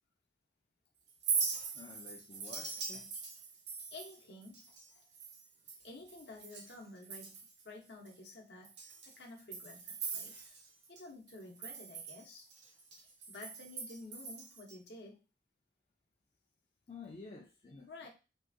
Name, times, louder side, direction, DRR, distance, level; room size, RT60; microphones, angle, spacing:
Chink clink, 1.1-6.8 7.0-7.6 8.1-8.2 8.6-11.0 11.3-14.7, right 5 dB, 70° right, 0.7 m, -41 dB
voice 1, 1.7-3.1 16.9-17.9, left 4 dB, 30° left, 0.3 m, -51 dB
voice 2, 3.9-5.1 5.8-7.4 7.6-10.5 10.9-12.5 13.3-15.2 17.9-18.1, left 2 dB, 65° left, 0.7 m, -51 dB
2.7 x 2.4 x 2.5 m
head